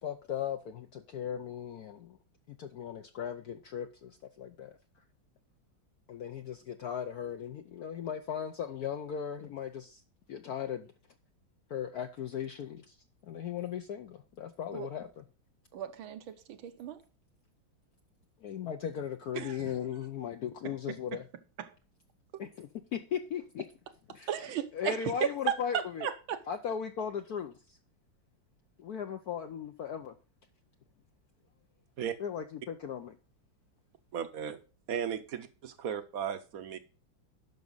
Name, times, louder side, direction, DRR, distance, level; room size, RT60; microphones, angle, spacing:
voice 1, 0.0-2.2 2.5-4.7 6.1-10.0 10.3-10.9 11.7-13.0 13.2-15.2 18.4-21.3 22.4-23.6 24.1-24.3 24.7-26.1 26.5-27.8 28.8-30.1 32.2-33.2, left 8 dB, 65° left, 1.0 m, -37 dB
voice 2, 15.7-17.0 19.3-19.7 20.6-21.2 21.6-21.7 22.3-22.4 24.3-26.4, right 9 dB, 85° right, 1.7 m, -35 dB
voice 3, 34.1-34.6 34.9-36.8, right 8 dB, 60° right, 1.0 m, -36 dB
10.5 x 6.2 x 3.9 m
omnidirectional pair, 2.2 m